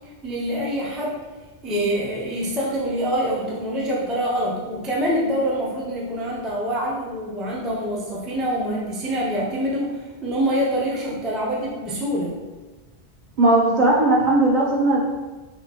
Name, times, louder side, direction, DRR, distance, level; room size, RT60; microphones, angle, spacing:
voice 1, 0.2-1.2 1.6-12.3, equal, ahead, -5 dB, 0.4 m, -25 dB
voice 2, 13.4-15.1, right 2 dB, 50° right, -4 dB, 0.7 m, -17 dB
3.5 x 3.0 x 2.8 m, 1.2 s
omnidirectional pair, 1.1 m